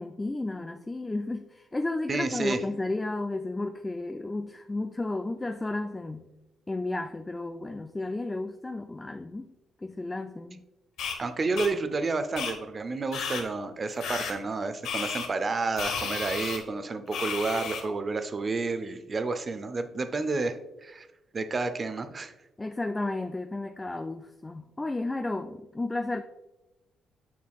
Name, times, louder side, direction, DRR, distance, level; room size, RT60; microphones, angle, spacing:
voice 1, 0.0-6.3 6.7-9.5 9.8-10.6 22.6-26.2, left 2 dB, 15° left, 7 dB, 0.3 m, -33 dB
voice 2, 2.1-2.6 11.2-21.1 21.3-22.3, right 3 dB, 35° right, 10 dB, 0.6 m, -30 dB
sound 1, 11.0-11.2 11.6-11.7 12.4-12.5 13.1-13.4 14.0-14.3 14.8-15.3 15.8-16.6 17.1-17.8, left 6 dB, 80° left, 1.1 m, -32 dB
7.1 x 6.1 x 2.3 m, 1.0 s
cardioid pair, 90°, 0 cm